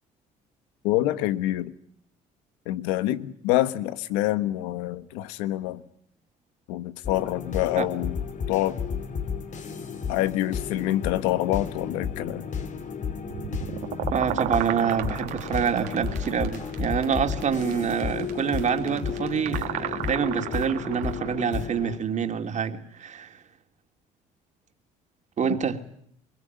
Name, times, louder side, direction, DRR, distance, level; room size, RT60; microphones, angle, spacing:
voice 1, 0.8-1.7 2.7-5.8 6.7-8.2 8.5-8.8 10.1-12.5 25.4-25.6, left 15 dB, 85° left, 1.4 m, -26 dB
sound 1, 7.0-22.0, left 6 dB, 50° left, 3.1 m, -33 dB
sound 2, 13.3-21.4, right 14 dB, 75° right, 2.4 m, -34 dB
voice 2, 14.1-23.4 25.4-25.8, right 7 dB, 50° right, 3.1 m, -26 dB
23.0 x 22.0 x 9.6 m
supercardioid pair, 70°, 16 cm